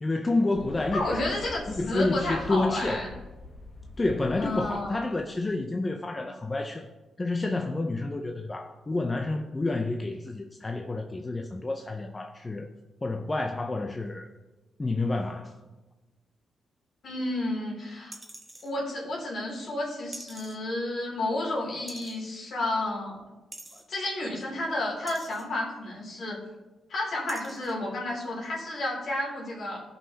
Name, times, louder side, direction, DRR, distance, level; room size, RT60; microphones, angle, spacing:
voice 1, 0.0-1.3 1.7-3.1 4.0-6.9 7.2-12.7 13.0-14.3 14.8-15.6, left 2 dB, 25° left, 0.5 m, -29 dB
sound 1, 0.5-5.4, left 3 dB, 40° left, 1.0 m, -44 dB
voice 2, 0.9-3.1 4.4-5.0 17.0-18.2 18.6-23.2 23.9-26.4 26.9-29.8, left 1 dB, 60° left, 2.8 m, -31 dB
sound 2, 18.1-18.7 20.1-20.6 21.9-22.2 23.5-23.8 25.1-25.5 26.5-26.6 27.3-27.7 28.2-28.3, right 1 dB, 10° right, 1.1 m, -45 dB
16.0 x 5.6 x 2.8 m
cardioid pair, 110°, 0 cm